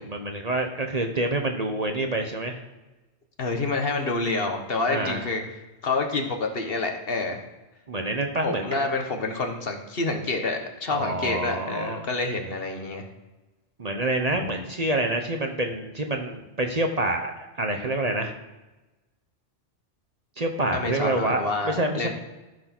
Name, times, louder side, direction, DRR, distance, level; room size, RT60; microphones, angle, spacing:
voice 1, 0.0-2.6 4.9-5.3 7.9-8.9 10.9-12.1 13.8-17.3 17.6-18.3 20.4-22.1, right 2 dB, 40° right, 4 dB, 0.9 m, -27 dB
voice 2, 3.4-5.4 5.8-7.4 8.4-13.1 14.3-14.4 20.7-22.1, left 3 dB, 55° left, 4 dB, 1.5 m, -28 dB
14.0 x 4.8 x 5.9 m, 1.1 s
omnidirectional pair, 1.2 m